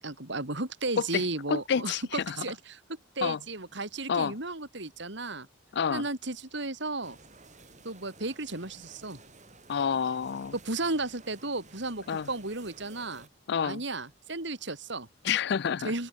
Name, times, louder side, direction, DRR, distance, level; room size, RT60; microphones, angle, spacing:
voice 1, 0.0-2.8 3.2-5.5 5.9-7.2 7.8-9.2 10.5-13.3 13.6-15.1 15.8-16.1, right 2 dB, 65° right, 3.9 m, -34 dB
voice 2, 1.5-2.4 3.2-3.4 4.1-4.3 5.7-6.1 9.7-10.5 12.1-12.3 13.5-13.8 15.2-15.9, left 7 dB, 60° left, 0.4 m, -28 dB
sound 1, 7.0-13.3, right 3 dB, 40° right, 4.7 m, -54 dB
open air
head